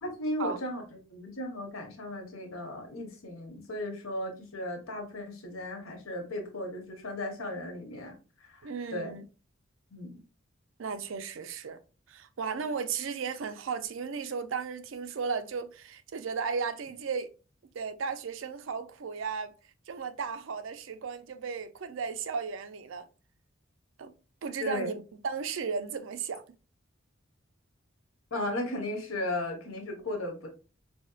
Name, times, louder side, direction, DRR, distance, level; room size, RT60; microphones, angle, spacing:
voice 1, 0.0-8.1 8.5-9.1 9.9-10.2 12.6-12.7 24.6-24.9 28.3-30.5, left 1 dB, 80° left, 1.0 m, -36 dB
voice 2, 8.6-9.3 10.8-11.8 12.1-17.3 17.7-19.5 19.9-23.1 24.0-24.1 24.4-26.4, right 5 dB, 65° right, 0.4 m, -35 dB
4.3 x 2.7 x 2.3 m
head